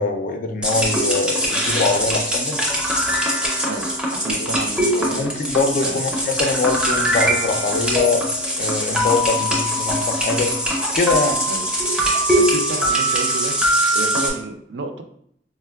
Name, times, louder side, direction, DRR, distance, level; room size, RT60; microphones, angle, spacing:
voice 1, 0.0-2.6 4.4-4.5 5.1-8.3 8.5-10.5 10.9-11.4, left 3 dB, 50° left, 5 dB, 0.4 m, -23 dB
sound 1, 0.6-14.3, equal, 5° right, 0.6 m, -21 dB
voice 2, 4.2-5.3 5.8-6.0 9.4-9.5 11.5-11.7 12.4-13.6 13.9-15.0, right 3 dB, 75° right, 6 dB, 0.4 m, -30 dB
4.2 x 2.1 x 2.2 m, 0.69 s
head